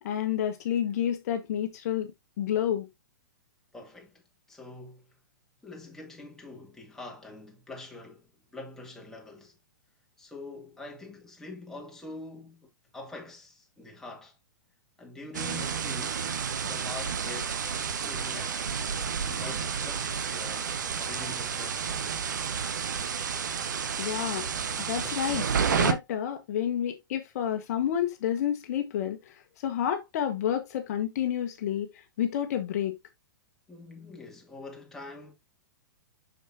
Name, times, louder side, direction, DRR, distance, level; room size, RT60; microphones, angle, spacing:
voice 1, 0.0-2.1 2.4-2.9 24.0-24.5 24.8-25.4 25.8-33.0, left 10 dB, 50° left, 1.2 m, -30 dB
voice 2, 3.7-4.2 4.5-5.1 5.6-9.6 10.2-12.7 12.9-14.4 15.0-16.3 16.6-17.6 18.0-18.8 19.3-20.7 21.0-22.2 33.7-35.3, left 2 dB, 5° left, 2.2 m, -44 dB
sound 1, 15.3-25.9, right 6 dB, 65° right, 1.2 m, -31 dB
6.5 x 6.4 x 2.7 m
figure-of-eight pair, 110°, 11 cm